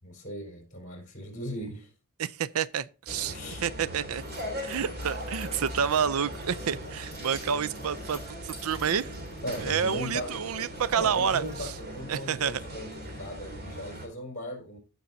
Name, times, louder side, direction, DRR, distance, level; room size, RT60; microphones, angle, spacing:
voice 1, 0.0-1.9 3.2-3.7 9.4-10.3 10.9-14.8, equal, 35° left, 4.5 m, -38 dB
voice 2, 2.2-3.4 3.6-4.2 4.6-9.1 9.6-11.7 12.1-12.6, right 7 dB, 80° right, 0.5 m, -29 dB
sound 1, 3.1-14.1, equal, 45° right, 2.9 m, -39 dB
Keys jangling, 3.9-12.5, right 1 dB, 30° right, 3.7 m, -54 dB
15.5 x 6.2 x 2.7 m
head